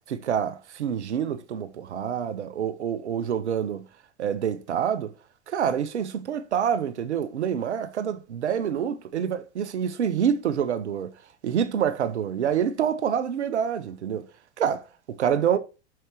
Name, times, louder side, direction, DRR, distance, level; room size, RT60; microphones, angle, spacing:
voice 1, 0.1-3.8 4.2-5.1 5.5-11.1 11.4-14.3 14.6-15.6, right 8 dB, 90° right, 0.8 m, -27 dB
7.7 x 5.8 x 2.9 m
hypercardioid pair, 85°, 34 cm